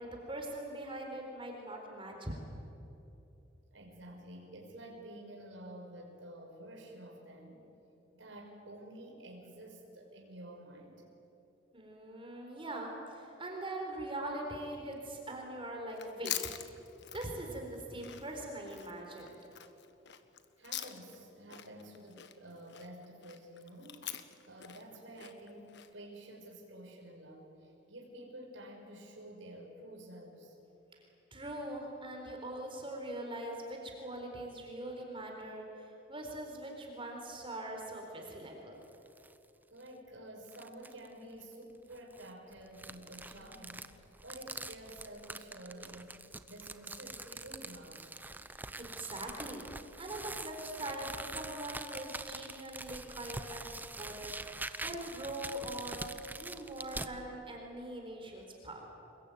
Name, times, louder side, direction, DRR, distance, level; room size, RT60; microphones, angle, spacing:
voice 1, 0.0-2.4 11.7-16.4 17.1-19.4 31.3-38.8 48.8-49.7 50.0-58.7, right 1 dB, 30° right, 1 dB, 4.1 m, -42 dB
voice 2, 3.7-7.7 8.1-11.1 20.6-30.6 39.7-48.1, right 1 dB, 75° right, 0 dB, 5.9 m, -50 dB
Chewing mastication, 15.9-21.2 21.5-25.9, left 11 dB, 65° left, 1.4 m, -44 dB
sound 1, 38.8-39.4 39.8-39.9 40.5-41.1 41.9-57.1, right 2 dB, 10° right, 0.9 m, -45 dB
28.0 x 22.0 x 9.3 m, 2.9 s
head